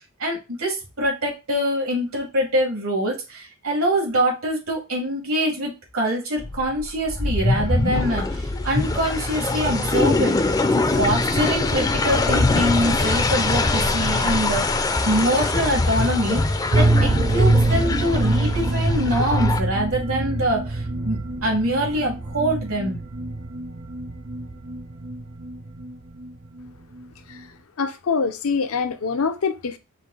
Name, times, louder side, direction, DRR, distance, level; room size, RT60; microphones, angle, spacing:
voice 1, 0.2-10.4 10.7-23.0, equal, 80° right, 2.3 m, -24 dB
sound 1, 6.4-19.6, left 2 dB, 15° left, 0.4 m, -23 dB
sound 2, 16.7-26.3 26.6-26.7 27.0-27.1, right 2 dB, 45° right, 0.6 m, -24 dB
voice 2, 27.8-29.8, left 5 dB, 85° left, 0.6 m, -24 dB
5.2 x 2.5 x 3.9 m
head